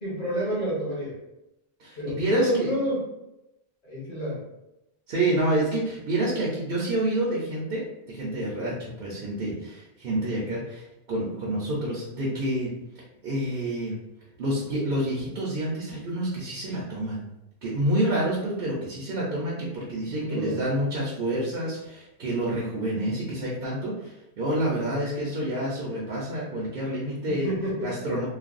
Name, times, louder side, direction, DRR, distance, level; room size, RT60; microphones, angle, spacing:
voice 1, 0.0-1.1 2.0-3.0 3.8-4.4 20.0-20.6 27.3-27.9, right 1 dB, 35° left, -6 dB, 1.1 m, -29 dB
voice 2, 1.8-2.7 5.1-12.7 13.2-14.0 14.4-17.2 17.6-27.5 27.8-28.3, right 1 dB, 55° right, -5 dB, 0.7 m, -28 dB
3.2 x 2.2 x 2.4 m, 0.91 s
omnidirectional pair, 1.2 m